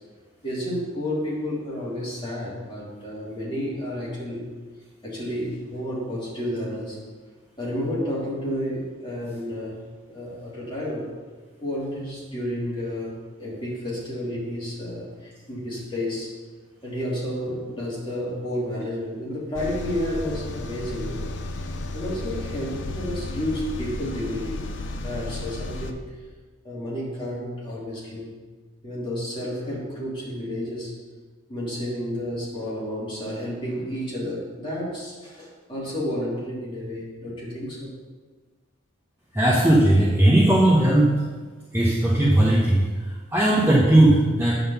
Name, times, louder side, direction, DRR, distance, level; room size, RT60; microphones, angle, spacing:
voice 1, 0.4-4.5 5.0-7.0 7.6-9.8 10.1-11.1 11.6-16.3 16.8-21.3 21.9-24.6 24.9-26.1 26.6-28.3 28.8-30.9 31.5-37.9, left 1 dB, 25° left, -6 dB, 2.5 m, -31 dB
sound 1, 19.5-25.9, left 2 dB, 55° left, 0.6 m, -33 dB
voice 2, 39.3-41.2 41.7-44.6, right 1 dB, 10° right, -6 dB, 0.9 m, -18 dB
8.7 x 3.9 x 6.8 m, 1.4 s
head